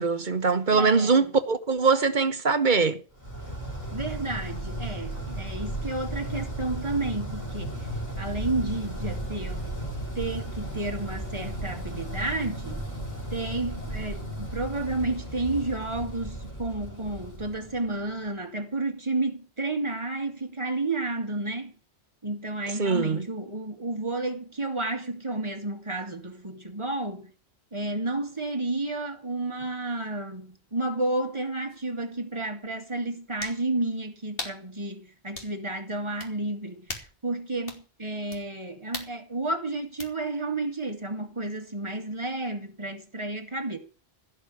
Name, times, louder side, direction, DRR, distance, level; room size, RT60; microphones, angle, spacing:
voice 1, 0.0-3.0 22.8-23.2, right 4 dB, 45° right, 1.3 m, -22 dB
voice 2, 0.7-1.3 3.9-7.9 8.2-9.7 10.2-12.8 13.3-21.7 22.2-27.3 27.7-43.8, right 2 dB, 25° right, 2.3 m, -31 dB
sound 1, 3.2-18.2, right 1 dB, 15° left, 5.5 m, -35 dB
sound 2, 31.7-31.8 33.4-33.6 34.4-34.6 35.3-35.6 36.2-36.3 36.9-37.2 37.7-37.8 38.3-38.4 38.9-39.1 40.0-40.1, left 2 dB, 60° left, 2.8 m, -37 dB
16.5 x 6.0 x 9.7 m
omnidirectional pair, 1.1 m